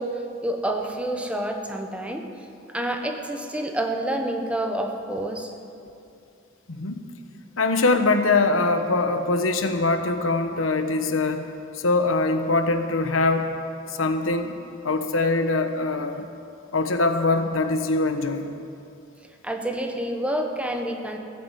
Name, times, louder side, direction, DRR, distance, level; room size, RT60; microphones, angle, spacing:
voice 1, 0.0-2.3 2.7-5.5 19.4-21.2, right 1 dB, 5° right, 3 dB, 1.1 m, -28 dB
voice 2, 6.7-7.0 7.6-11.4 11.7-13.5 13.9-14.6 14.8-16.3 16.7-18.5, left 3 dB, 90° left, 7 dB, 1.1 m, -23 dB
15.5 x 9.1 x 8.3 m, 2.6 s
head